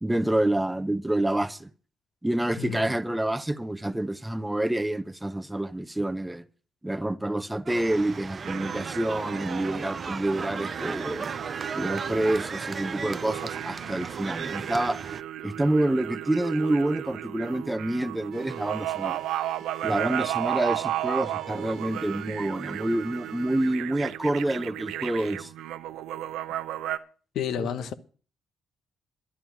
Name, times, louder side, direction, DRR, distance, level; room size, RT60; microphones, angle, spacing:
voice 1, 0.0-1.7 2.2-6.4 6.8-11.3 11.7-15.0 15.4-19.2 19.8-25.5 27.6-27.7, right 1 dB, 10° right, 0.8 m, -28 dB
voice 2, 2.6-2.9 27.3-27.9, left 8 dB, 75° left, 1.2 m, -30 dB
sound 1, 7.7-15.2, right 5 dB, 40° right, 0.5 m, -36 dB
sound 2, 8.4-27.0, right 13 dB, 90° right, 0.8 m, -34 dB
sound 3, 18.3-23.8, right 8 dB, 65° right, 1.1 m, -50 dB
11.5 x 11.5 x 6.1 m
cardioid pair, 90°, 0 cm